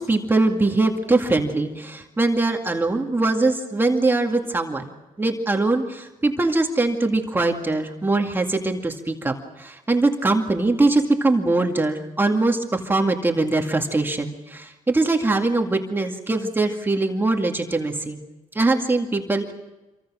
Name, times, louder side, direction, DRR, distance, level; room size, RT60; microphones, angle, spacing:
voice 1, 0.0-18.2 18.5-19.5, right 2 dB, 15° right, 2 dB, 2.1 m, -22 dB
27.0 x 25.0 x 6.3 m, 1.1 s
cardioid pair, 130°, 14 cm